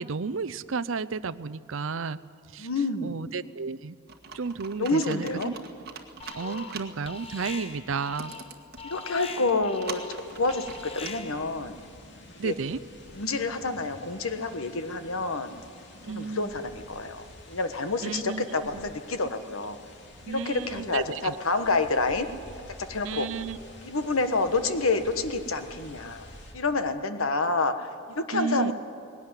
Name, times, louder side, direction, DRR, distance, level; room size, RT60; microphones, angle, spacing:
voice 1, 0.0-2.2 2.5-2.7 3.0-4.0 4.3-5.5 6.3-8.3 12.4-12.8 16.0-16.5 18.0-18.4 18.7-18.9 20.3-21.3 23.0-23.6 28.3-28.7, right 5 dB, 70° right, 17 dB, 0.6 m, -32 dB
voice 2, 2.6-3.3 4.8-5.5 6.4-6.7 8.8-11.7 12.4-12.5 13.1-15.6 16.1-19.8 20.3-22.3 22.8-23.3 23.8-26.3 26.5-28.7, left 3 dB, 80° left, 9 dB, 1.4 m, -28 dB
Computer keyboard, 4.1-11.1, right 5 dB, 50° right, 1.7 m, -45 dB
Alarm, 6.2-6.8 7.0-11.5, left 4 dB, 25° left, 1.1 m, -42 dB
sound 1, 10.1-26.5, left 1 dB, 55° left, 2.7 m, -49 dB
19.5 x 17.5 x 9.8 m, 2.4 s
head